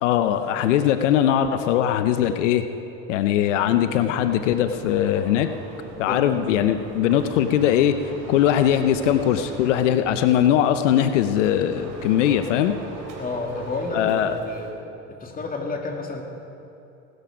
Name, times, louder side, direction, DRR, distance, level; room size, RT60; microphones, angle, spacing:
voice 1, 0.0-2.6 3.1-5.5 6.0-8.0 8.3-12.8 13.9-14.3, left 10 dB, 90° left, 9 dB, 0.8 m, -20 dB
sound 1, 3.8-14.7, right 2 dB, 55° right, 3.6 m, -38 dB
voice 2, 6.1-6.4 13.2-14.7 15.1-16.2, left 3 dB, 25° left, 1 dB, 2.6 m, -30 dB
17.5 x 13.0 x 5.1 m, 2.8 s
supercardioid pair, 90°, 36 cm